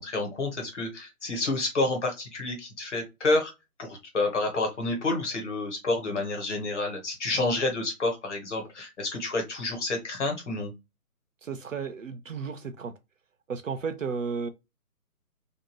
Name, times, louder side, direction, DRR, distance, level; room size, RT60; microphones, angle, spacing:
voice 1, 0.0-3.5 3.8-10.7, left 2 dB, 50° left, 1.2 m, -29 dB
voice 2, 11.4-12.9 13.5-14.5, right 5 dB, 55° right, 0.5 m, -33 dB
2.6 x 2.2 x 2.9 m
figure-of-eight pair, 160°, 47 cm